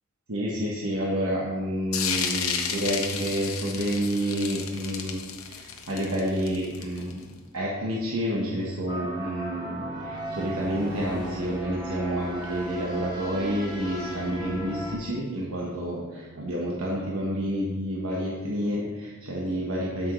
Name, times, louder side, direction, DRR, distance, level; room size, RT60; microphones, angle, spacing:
voice 1, 0.3-7.2 7.5-20.1, equal, 80° right, -4 dB, 1.2 m, -29 dB
sound 1, 1.9-7.2, left 7 dB, 75° left, 1.0 m, -32 dB
sound 2, 8.9-14.9, right 1 dB, 20° right, 1.5 m, -36 dB
12.5 x 6.2 x 3.1 m, 1.3 s
head